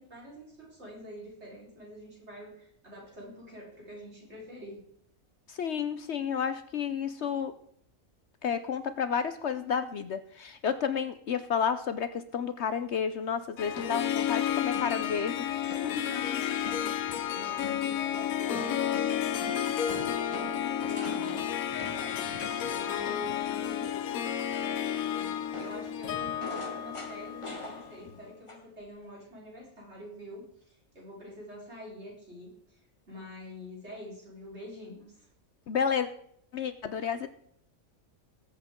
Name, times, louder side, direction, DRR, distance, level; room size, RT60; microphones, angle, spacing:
voice 1, 0.0-4.9 15.9-24.3 24.6-32.8 33.1-35.3, equal, 50° right, -3 dB, 4.6 m, -46 dB
voice 2, 5.5-7.5 8.4-15.5 15.8-16.0 35.7-36.1 36.5-37.3, left 7 dB, 60° left, 11 dB, 0.9 m, -31 dB
Harp, 13.6-28.1, left 10 dB, 85° left, 1.2 m, -32 dB
sound 1, 13.8-14.2 14.7-15.2 15.7-16.0 16.6-17.2 17.6-18.0 18.5-23.5 25.5-28.2 28.5-28.8, left 2 dB, 20° left, 1.5 m, -43 dB
20.0 x 8.1 x 3.7 m, 0.66 s
omnidirectional pair, 1.4 m